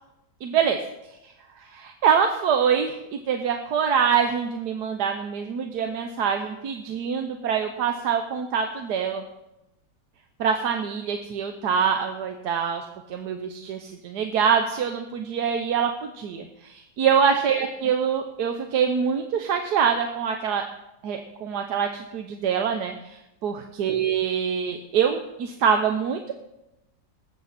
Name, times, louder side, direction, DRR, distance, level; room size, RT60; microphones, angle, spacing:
voice 1, 0.4-0.8 1.2-1.3 1.6-9.2 10.4-20.6 21.0-26.3, right 7 dB, 70° right, 5 dB, 1.4 m, -25 dB
19.5 x 8.6 x 4.2 m, 0.92 s
omnidirectional pair, 1.8 m